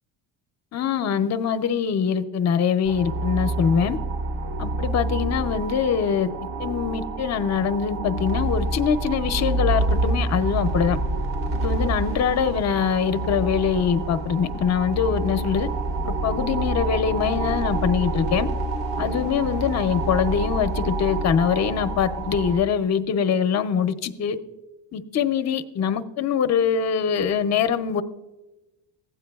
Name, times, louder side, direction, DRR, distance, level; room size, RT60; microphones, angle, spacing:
voice 1, 0.7-4.0 4.6-6.3 6.6-11.0 11.5-15.7 16.0-18.5 19.0-24.4 24.9-28.0, left 7 dB, 35° left, 0.5 m, -23 dB
sound 1, 2.8-22.6, right 2 dB, 60° right, 1.0 m, -27 dB
15.5 x 8.8 x 2.3 m
cardioid pair, 125°, 45 cm